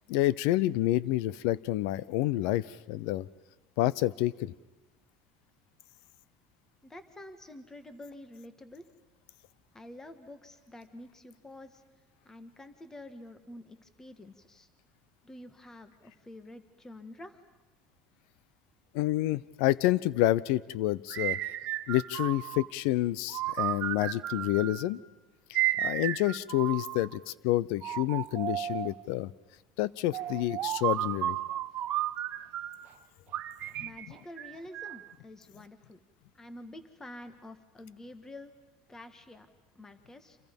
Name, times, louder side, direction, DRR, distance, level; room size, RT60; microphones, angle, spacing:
voice 1, 0.1-3.3 3.8-4.5 18.9-21.4 21.9-25.0 25.5-29.3 29.8-31.4, left 15 dB, 80° left, 21 dB, 0.7 m, -28 dB
voice 2, 6.8-8.8 9.7-11.8 12.2-14.7 15.2-17.4 33.8-36.0 36.3-38.5 38.9-39.5 39.7-40.4, left 1 dB, 15° left, 10 dB, 1.7 m, -48 dB
sound 1, 21.1-22.7 23.3-24.9 25.5-27.2 27.8-29.0 30.1-32.9 33.3-35.1, right 13 dB, 50° right, 0.9 m, -33 dB
30.0 x 27.0 x 5.4 m, 1.2 s
cardioid pair, 130°, 4 cm